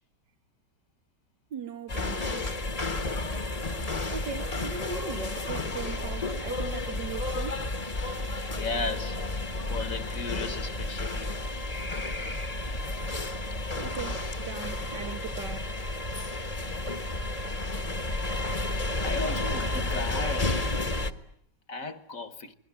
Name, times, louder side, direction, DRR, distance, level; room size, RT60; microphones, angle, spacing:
voice 1, 1.5-2.5 4.1-7.7 13.8-15.7, right 6 dB, 80° right, 2.2 m, -39 dB
sound 1, 1.9-21.1, left 2 dB, 25° left, 1.3 m, -31 dB
voice 2, 8.6-9.2 9.7-11.4 12.6-12.7 13.0-13.1 19.0-20.8 21.7-22.5, left 3 dB, 50° left, 1.8 m, -35 dB
27.5 x 22.0 x 9.7 m
omnidirectional pair, 1.8 m